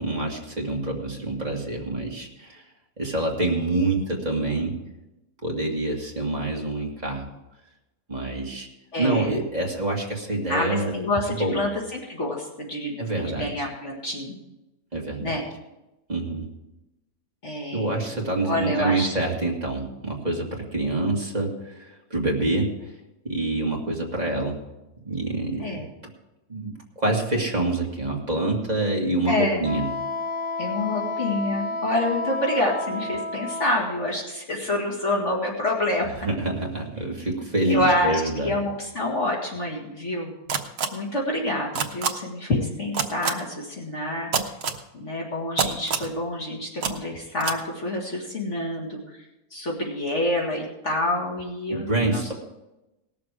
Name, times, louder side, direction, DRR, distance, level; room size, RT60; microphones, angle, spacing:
voice 1, 0.0-2.6 3.0-4.8 5.4-7.3 8.1-8.7 9.0-10.9 11.3-11.6 13.0-13.5 14.9-15.3 16.1-16.4 17.7-21.8 22.1-22.7 23.2-24.6 25.1-25.7 26.5-29.9 36.2-38.5 51.7-52.3, right 2 dB, 30° right, -1 dB, 2.1 m, -26 dB
voice 2, 8.9-9.4 10.5-14.4 15.2-15.4 17.4-18.1 18.4-19.1 25.6-25.9 29.3-29.7 30.6-36.1 37.2-40.3 40.9-44.3 44.9-49.0 49.5-52.3, left 1 dB, 55° left, -2 dB, 2.4 m, -27 dB
Wind instrument woodwind instrument, 29.6-33.8, left 2 dB, 25° left, 0.7 m, -30 dB
sound 1, 40.5-40.9 41.7-42.1 42.9-43.3 44.3-44.8 45.6-46.1 46.8-46.9 47.4-47.6, right 6 dB, 70° right, 1.4 m, -24 dB
18.5 x 7.0 x 4.9 m, 0.95 s
omnidirectional pair, 1.5 m